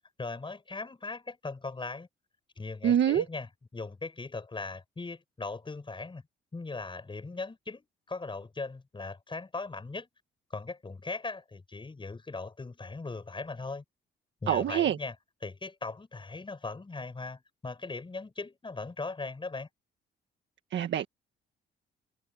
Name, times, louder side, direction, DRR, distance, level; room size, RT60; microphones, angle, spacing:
voice 1, 0.2-2.1 2.6-3.5 3.7-6.2 6.5-10.1 10.5-13.8 14.4-15.2 15.4-19.7, left 3 dB, 25° left, 7.3 m, -39 dB
voice 2, 2.8-3.3 14.5-15.0 20.7-21.1, right 10 dB, 65° right, 1.6 m, -25 dB
cardioid pair, 90°, 20 cm